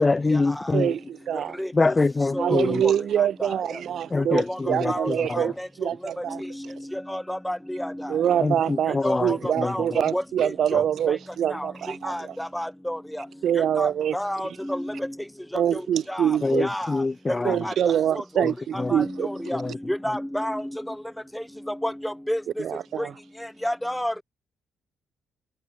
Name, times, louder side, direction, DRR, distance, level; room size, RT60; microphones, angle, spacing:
voice 1, 0.0-0.9 1.7-2.8 4.1-5.4 8.4-9.7 10.7-10.8 16.4-17.6 18.4-18.5 18.8-18.9 19.5-19.7, left 3 dB, 25° left, 0.3 m, -25 dB
voice 2, 0.7-1.6 2.4-5.5 5.8-6.4 8.1-12.3 13.4-14.2 15.5-16.7 17.4-19.3 22.6-23.1, right 9 dB, 65° right, 1.5 m, -25 dB
voice 3, 2.2-2.9 3.4-3.5 4.1-4.6 4.9-5.7 6.4-6.5 6.9-8.1 9.0-9.4 9.6-9.8 10.1-10.8 11.5-11.7 12.0-13.0 13.8-15.1 15.7-15.8 16.1-16.3 16.6-16.9 17.3-17.4 17.6-17.7 18.4-18.5 18.7-20.9 21.7-22.4 23.0-23.1 23.6-24.2, equal, 5° left, 3.9 m, -30 dB
cardioid pair, 90°, 0 cm